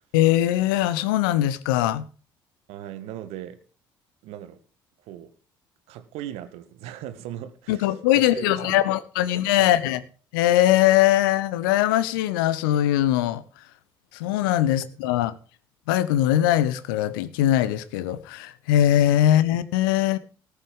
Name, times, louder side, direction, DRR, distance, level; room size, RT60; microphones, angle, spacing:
voice 1, 0.1-2.0 7.7-10.0 10.3-13.4 14.1-15.3 15.9-20.2, left 13 dB, 65° left, 1.0 m, -21 dB
voice 2, 2.7-3.6 4.2-4.6 5.0-5.3 5.9-8.9 9.2-9.3 9.6-9.8, right 11 dB, 60° right, 1.6 m, -38 dB
19.0 x 7.0 x 5.4 m
figure-of-eight pair, 50°, 12 cm